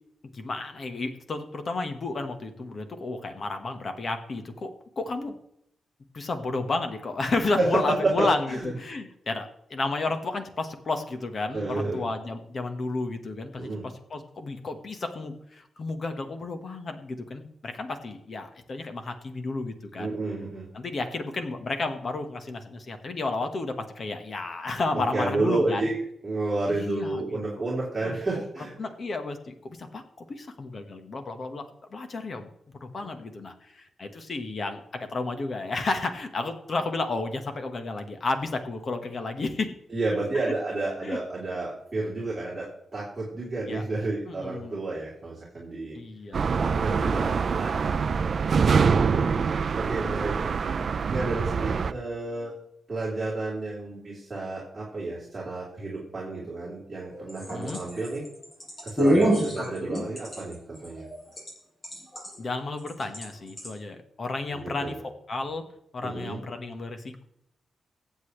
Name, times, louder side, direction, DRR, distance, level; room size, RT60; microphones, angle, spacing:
voice 1, 0.3-4.7 5.0-5.4 6.1-20.2 20.7-25.9 26.7-27.4 28.0-28.4 28.8-31.6 31.9-32.5 32.8-39.7 40.3-40.5 41.0-41.2 43.7-43.8 44.3-44.8 45.9-46.4 48.9-49.6 57.4-57.8 62.4-65.7 65.9-67.2, left 3 dB, 40° left, 6 dB, 1.5 m, -32 dB
voice 2, 7.6-8.7 11.5-12.0 13.6-13.9 20.0-20.7 25.1-26.0 26.2-28.7 33.0-33.2 39.9-46.0 46.5-48.4 49.0-50.4 51.1-52.6 52.9-58.2 58.8-61.1 64.5-65.0 66.0-66.4, right 2 dB, 20° right, -6 dB, 3.9 m, -31 dB
sound 1, 46.3-51.9, right 5 dB, 45° right, 0.4 m, -25 dB
sound 2, 57.1-61.5 61.8-62.4 62.9-63.3 63.6-63.7, right 1 dB, 25° left, 5.8 m, -26 dB
23.5 x 8.2 x 3.3 m, 0.78 s
wide cardioid pair, 160°, 0 cm